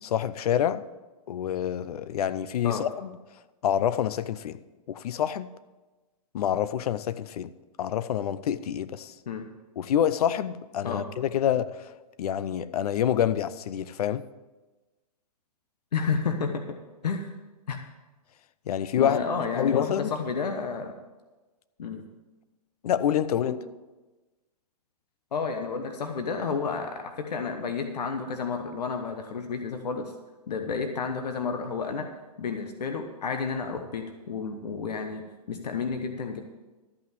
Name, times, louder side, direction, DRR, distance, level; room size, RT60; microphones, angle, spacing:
voice 1, 0.0-0.8 1.3-3.2 3.6-4.6 4.9-5.5 6.3-7.5 7.8-9.2 9.8-14.2 18.7-19.2 19.5-20.1 22.8-23.6, left 10 dB, 70° left, 0.6 m, -27 dB
voice 2, 15.9-16.8 17.0-17.3 17.7-17.8 19.0-20.9 21.8-22.1 23.4-23.5 25.3-30.1 30.5-32.1 32.4-36.4, left 5 dB, 90° left, 1.2 m, -31 dB
13.0 x 5.8 x 7.6 m
hypercardioid pair, 150°, 20 cm